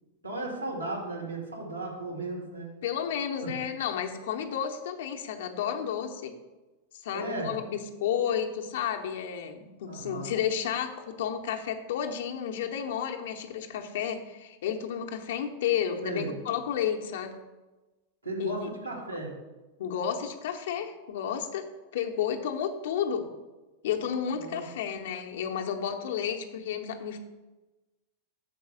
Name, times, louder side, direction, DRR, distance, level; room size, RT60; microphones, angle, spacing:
voice 1, 0.2-2.7 3.4-3.5 7.1-7.5 9.9-10.3 16.0-16.3 18.2-19.3 24.3-24.6, right 2 dB, 85° right, -2 dB, 2.5 m, -35 dB
voice 2, 2.8-6.3 6.9-17.4 18.4-18.7 19.8-21.7 21.9-23.2 23.8-27.2, left 8 dB, 55° left, 3 dB, 0.9 m, -32 dB
6.9 x 4.7 x 6.9 m, 1.1 s
figure-of-eight pair, 90°, 0 cm